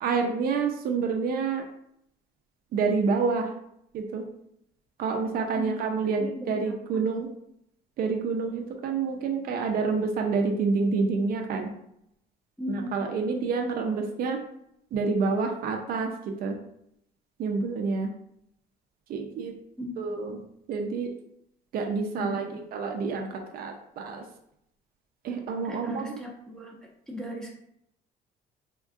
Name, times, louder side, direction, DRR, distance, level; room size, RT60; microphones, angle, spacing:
voice 1, 0.0-1.6 2.7-3.5 3.9-4.2 5.0-7.3 8.0-11.7 12.7-14.4 14.9-16.1 16.4-16.5 17.4-18.1 19.1-19.5 20.0-20.4 20.7-21.1 21.7-22.5 22.7-24.2 25.2-26.1, right 4 dB, 60° right, 3 dB, 0.5 m, -28 dB
voice 2, 6.2-7.1 12.6-12.9 19.8-20.0 22.1-22.6 25.6-27.5, left 1 dB, 5° left, -3 dB, 0.8 m, -37 dB
3.5 x 2.3 x 2.4 m, 0.75 s
cardioid pair, 110°, 17 cm